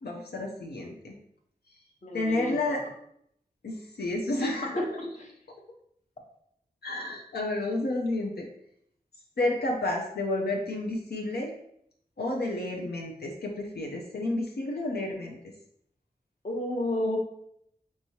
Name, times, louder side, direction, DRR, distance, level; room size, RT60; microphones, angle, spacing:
voice 1, 0.0-1.2 1.7-1.8 2.1-2.8 3.6-4.8 6.8-8.5 9.4-11.5 12.2-15.4, left 2 dB, 85° left, 0 dB, 0.5 m, -31 dB
voice 2, 2.0-2.8 4.4-5.3 16.4-17.2, left 1 dB, 50° left, 0 dB, 0.8 m, -32 dB
4.6 x 3.0 x 2.7 m, 0.72 s
wide cardioid pair, 70°, 16 cm